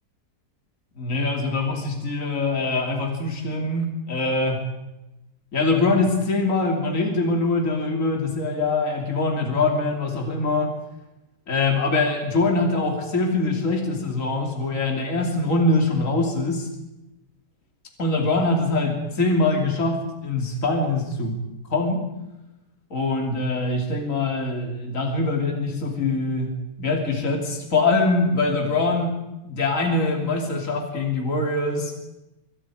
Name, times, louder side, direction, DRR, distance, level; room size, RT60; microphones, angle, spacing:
voice 1, 1.0-4.7 5.5-10.7 11.5-16.7 18.0-21.4 21.7-22.1 22.9-29.1 29.4-31.9, left 2 dB, 45° left, 2 dB, 3.4 m, -23 dB
26.0 x 25.0 x 5.0 m, 0.94 s
omnidirectional pair, 1.9 m